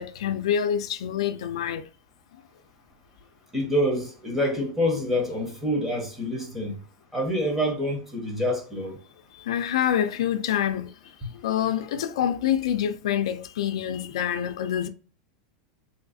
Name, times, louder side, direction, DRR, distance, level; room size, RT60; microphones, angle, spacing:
voice 1, 0.0-1.8 9.4-10.9 11.4-14.9, left 9 dB, 85° left, 0.4 m, -26 dB
voice 2, 3.5-6.8 7.1-9.0, equal, 5° right, 1.2 m, -26 dB
3.2 x 3.1 x 2.6 m
supercardioid pair, 155°, 3 cm